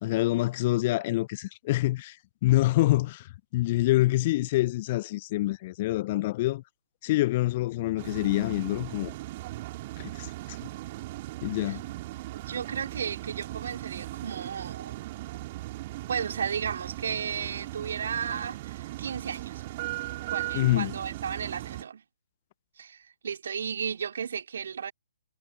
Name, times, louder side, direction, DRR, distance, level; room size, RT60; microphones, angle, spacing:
voice 1, 0.0-2.2 2.4-6.6 7.0-9.1 10.0-10.6 11.4-11.8 20.5-21.0, left 17 dB, 35° left, 0.8 m, -26 dB
sound 1, 8.0-21.8, right 18 dB, 35° right, 4.0 m, -38 dB
voice 2, 12.3-15.1 16.1-19.6 20.3-22.0 22.8-24.9, right 7 dB, 55° right, 3.5 m, -34 dB
figure-of-eight pair, 130°, 0 cm